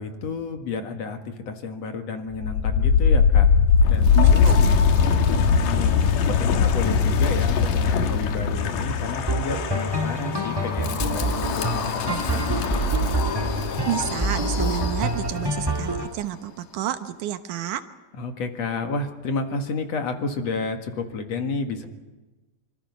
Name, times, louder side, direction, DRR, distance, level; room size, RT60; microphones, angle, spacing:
voice 1, 0.0-3.5 3.9-4.2 5.0-6.0 6.3-12.4 18.1-21.9, left 4 dB, 55° left, 5 dB, 2.8 m, -31 dB
Wind, 2.3-15.3, left 6 dB, 85° left, 3.1 m, -21 dB
voice 2, 4.1-4.8 13.8-17.8, right 12 dB, 75° right, 9 dB, 2.6 m, -30 dB
sound 1, 9.3-16.1, right 1 dB, 10° right, 1.2 m, -26 dB
26.0 x 25.5 x 5.6 m, 1.2 s
omnidirectional pair, 3.7 m